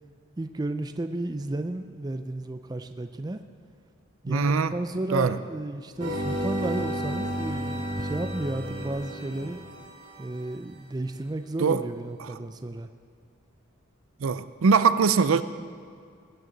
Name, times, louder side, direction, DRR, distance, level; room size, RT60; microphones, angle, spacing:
voice 1, 0.4-3.4 4.2-9.6 10.2-12.9, right 2 dB, 20° right, 9 dB, 0.3 m, -33 dB
voice 2, 4.3-4.7 5.1-5.3 11.6-11.8 14.2-15.4, right 5 dB, 75° right, 13 dB, 0.5 m, -21 dB
sound 1, 6.0-10.2, right 1 dB, 55° right, 2.4 m, -32 dB
19.5 x 9.3 x 4.0 m, 2.3 s
head